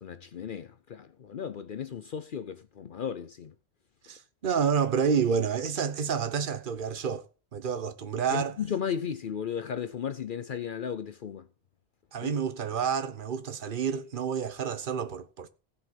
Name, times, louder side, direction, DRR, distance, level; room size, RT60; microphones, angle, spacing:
voice 1, 0.0-3.5 8.3-11.5 12.2-12.3, left 8 dB, 55° left, 0.8 m, -35 dB
voice 2, 4.1-8.6 12.1-15.5, right 6 dB, 55° right, 1.1 m, -29 dB
16.0 x 5.6 x 5.8 m
omnidirectional pair, 1.1 m